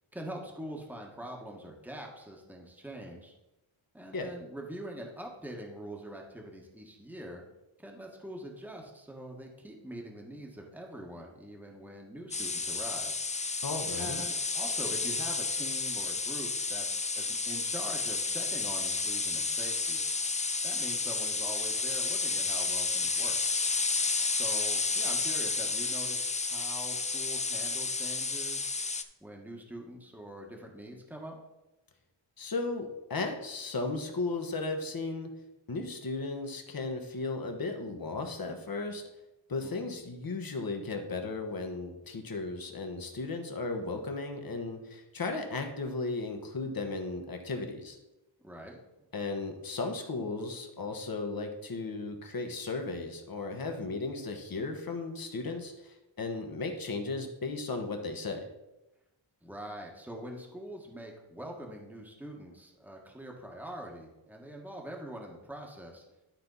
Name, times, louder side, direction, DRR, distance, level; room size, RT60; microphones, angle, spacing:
voice 1, 0.1-3.3 3.9-7.4 7.8-13.6 13.9-20.0 20.6-23.4 24.2-28.7 29.2-31.4 39.6-40.0 48.4-48.8 59.4-66.0, right 1 dB, 5° right, 0 dB, 1.4 m, -44 dB
sound 1, 12.3-29.0, left 4 dB, 15° left, 0.3 m, -31 dB
voice 2, 13.6-14.2 32.4-35.3 35.7-39.0 39.5-48.0 49.1-58.5, left 3 dB, 45° left, 4 dB, 1.3 m, -35 dB
12.0 x 4.3 x 4.0 m, 0.97 s
wide cardioid pair, 105°, 49 cm